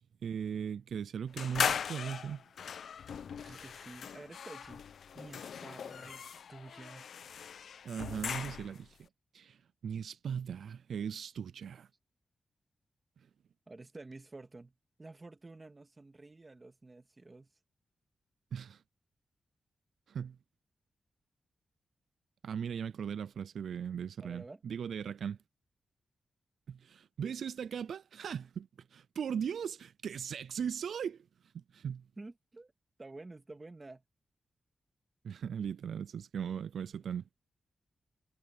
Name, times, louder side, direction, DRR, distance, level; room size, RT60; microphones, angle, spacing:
voice 1, 0.2-2.4 7.8-9.0 9.3-9.6 9.8-11.9 18.5-18.8 20.1-20.4 22.4-25.4 26.7-31.2 31.5-32.0 35.2-37.2, right 7 dB, 80° right, 0.3 m, -38 dB
sound 1, 1.4-8.9, left 7 dB, 75° left, 0.9 m, -39 dB
voice 2, 3.4-4.8 5.1-7.1 13.7-17.5 24.2-24.6 32.2-32.7 33.0-34.0, right 2 dB, 20° right, 2.0 m, -50 dB
wide cardioid pair, 180°, 0 cm